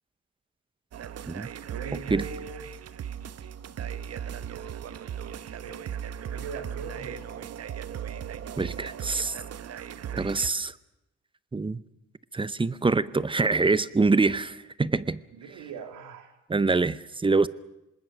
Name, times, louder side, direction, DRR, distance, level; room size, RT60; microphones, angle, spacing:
sound 1, 0.9-10.5, right 9 dB, 55° right, 1.0 m, -37 dB
voice 1, 1.7-2.6 4.4-4.7 5.5-7.4 15.3-16.4, right 6 dB, 85° right, 6 dB, 2.6 m, -41 dB
voice 2, 8.6-9.4 10.1-10.8 11.5-11.8 12.3-15.2 16.5-17.5, right 3 dB, 15° right, 17 dB, 0.7 m, -25 dB
25.5 x 20.0 x 6.2 m, 0.90 s
cardioid pair, 90°, 30 cm